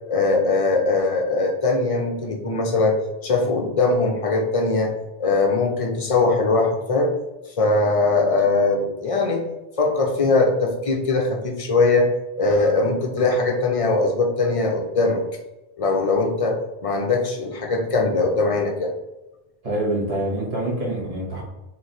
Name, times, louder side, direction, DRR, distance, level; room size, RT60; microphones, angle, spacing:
voice 1, 0.1-3.0 3.2-4.9 5.2-7.1 7.6-9.4 9.8-12.1 12.4-15.2 15.8-18.9, left 3 dB, 40° left, 2 dB, 0.6 m, -21 dB
voice 2, 19.6-21.4, right 1 dB, 35° right, -5 dB, 1.4 m, -25 dB
3.2 x 3.1 x 4.0 m, 1.0 s
omnidirectional pair, 1.0 m